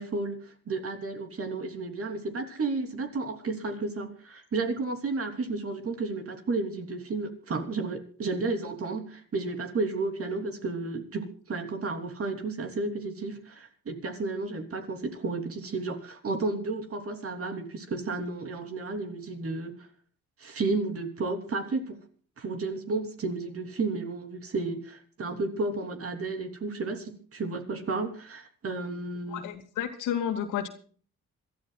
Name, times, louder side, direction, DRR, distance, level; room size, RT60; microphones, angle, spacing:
voice 1, 0.0-19.7 20.4-22.0 22.4-29.4, right 3 dB, 50° right, 3.3 m, -32 dB
voice 2, 29.3-30.7, left 9 dB, 85° left, 2.4 m, -31 dB
26.5 x 13.5 x 2.4 m
cardioid pair, 90°, 30 cm